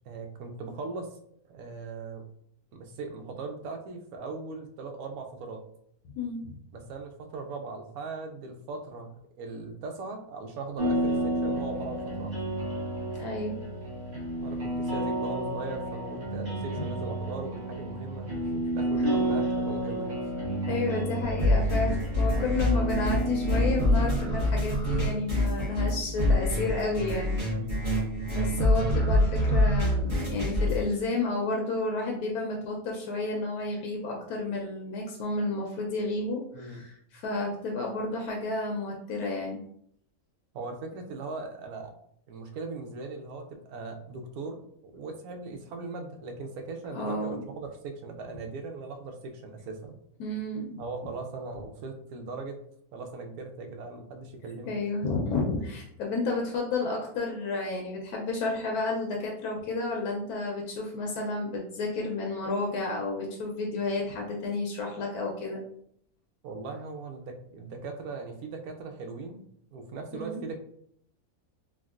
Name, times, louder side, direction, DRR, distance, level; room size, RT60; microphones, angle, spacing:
voice 1, 0.0-1.2 1.5-2.2 2.7-5.6 6.7-12.5 14.4-20.3 27.4-27.8 36.5-36.8 40.5-41.9 42.3-50.0 50.8-52.6 52.9-54.8 66.4-70.6, right 3 dB, 75° right, 4 dB, 1.0 m, -39 dB
voice 2, 6.1-6.5 13.2-13.6 19.0-19.2 20.7-27.4 28.3-39.6 46.9-47.4 50.2-50.8 54.7-65.6 70.1-70.4, left 3 dB, 80° left, 0 dB, 1.1 m, -31 dB
sound 1, 10.8-24.4, right 1 dB, 55° right, 1.4 m, -31 dB
sound 2, 21.2-30.9, left 1 dB, 35° right, 1.1 m, -26 dB
3.5 x 2.3 x 2.3 m, 0.68 s
omnidirectional pair, 1.6 m